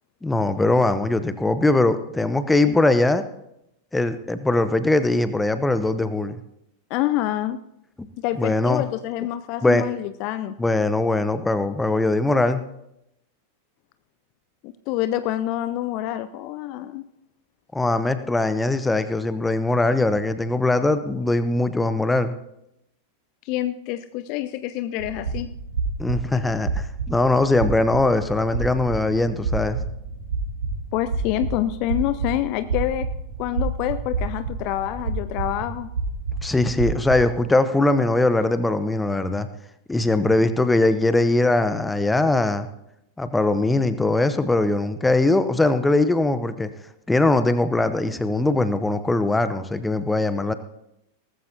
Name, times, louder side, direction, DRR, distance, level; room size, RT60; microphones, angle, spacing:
voice 1, 0.2-3.2 3.9-6.4 8.4-8.8 9.6-9.8 10.6-12.6 17.7-22.3 26.0-29.8 36.4-39.5 39.9-42.7 43.2-46.7 47.1-50.5, left 2 dB, 10° left, 12 dB, 0.8 m, -21 dB
voice 2, 6.9-7.6 8.2-10.5 14.6-17.0 23.4-25.5 30.9-33.1 33.4-35.9, left 13 dB, 45° left, 13 dB, 0.4 m, -27 dB
sound 1, 25.0-37.5, right 4 dB, 70° right, 4.9 m, -29 dB
18.5 x 14.5 x 2.8 m, 0.82 s
figure-of-eight pair, 90°, 0 cm